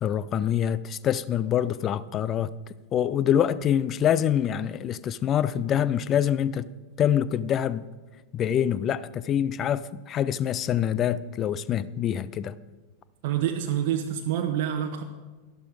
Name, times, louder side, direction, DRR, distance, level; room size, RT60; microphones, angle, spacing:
voice 1, 0.0-2.5 2.9-6.7 7.0-7.8 8.3-12.5, left 9 dB, 30° left, 0.4 m, -25 dB
voice 2, 13.2-15.0, right 10 dB, 50° right, 0.9 m, -27 dB
12.0 x 11.5 x 4.8 m
figure-of-eight pair, 90°, 0 cm